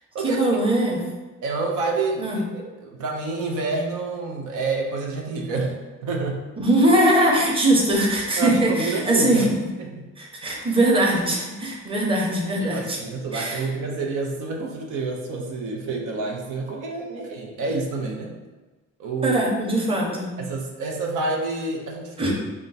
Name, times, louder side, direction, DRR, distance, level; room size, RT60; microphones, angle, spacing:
voice 1, 0.2-1.0 2.2-2.4 6.6-9.6 10.2-13.0 13.3-13.7 17.1-17.2 19.2-20.3 22.2-22.3, right 1 dB, 20° right, -1 dB, 0.9 m, -21 dB
voice 2, 1.4-6.4 8.4-9.5 9.8-10.0 12.6-18.3 19.0-19.4 20.4-22.3, right 3 dB, 80° right, 0 dB, 0.7 m, -28 dB
3.7 x 2.2 x 4.0 m, 1.2 s
cardioid pair, 90°, 30 cm